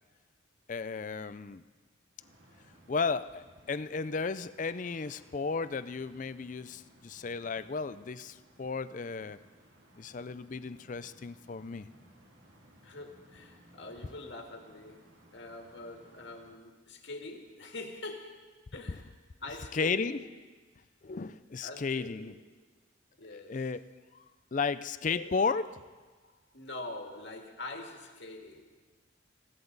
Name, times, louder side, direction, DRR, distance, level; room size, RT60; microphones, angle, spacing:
voice 1, 0.7-1.6 2.9-9.4 10.0-11.9 19.7-20.2 21.0-22.3 23.5-23.8 24.1-24.2 24.5-25.6, left 4 dB, 40° left, 13 dB, 0.4 m, -34 dB
sound 1, 2.2-16.6, right 1 dB, 70° right, 2.5 m, -61 dB
voice 2, 12.8-19.1 19.4-20.3 21.6-22.4 23.2-23.7 25.1-25.4 26.2-28.8, left 2 dB, 60° left, 3 dB, 1.9 m, -44 dB
20.5 x 16.0 x 4.0 m, 1.3 s
head